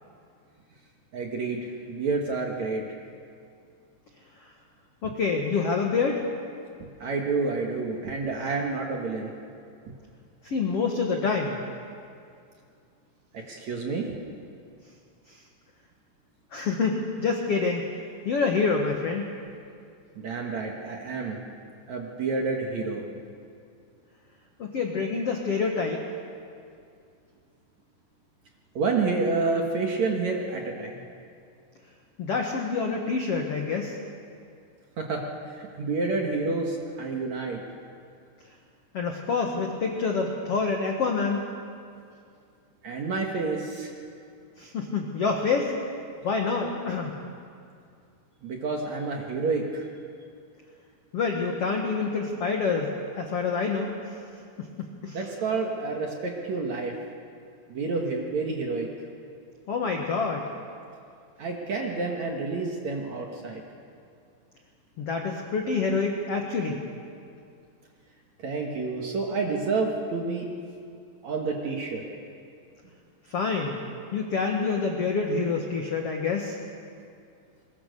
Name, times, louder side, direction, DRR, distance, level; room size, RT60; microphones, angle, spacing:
voice 1, 1.1-2.8 6.8-9.3 9.9-10.0 13.3-14.2 20.2-21.4 21.9-23.0 28.7-31.0 35.0-35.2 35.5-37.6 42.8-43.9 48.4-49.8 55.1-56.9 57.7-58.9 61.4-63.6 68.4-70.5 71.2-72.1, right 3 dB, 55° right, 1 dB, 2.2 m, -29 dB
voice 2, 5.0-6.3 10.4-11.6 16.5-17.8 18.2-19.3 24.6-26.0 32.2-34.0 38.9-41.4 44.6-45.8 46.2-47.2 51.1-53.9 54.8-55.2 59.7-60.5 65.0-66.8 73.3-73.8 74.1-76.6, left 4 dB, 75° left, 1 dB, 1.4 m, -27 dB
22.0 x 21.5 x 6.7 m, 2.4 s
omnidirectional pair, 5.1 m